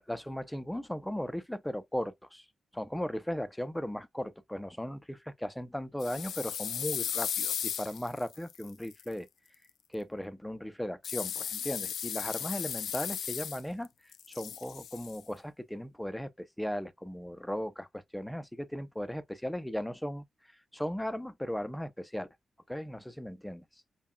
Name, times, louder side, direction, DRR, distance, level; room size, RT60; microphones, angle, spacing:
voice 1, 0.0-2.5 2.7-9.3 9.9-22.3 22.7-23.6, equal, 5° left, 0.5 m, -37 dB
sound 1, 6.0-9.0 11.0-13.9 14.1-15.2, left 9 dB, 90° left, 0.3 m, -36 dB
5.5 x 2.3 x 2.2 m
cardioid pair, 100°, 0 cm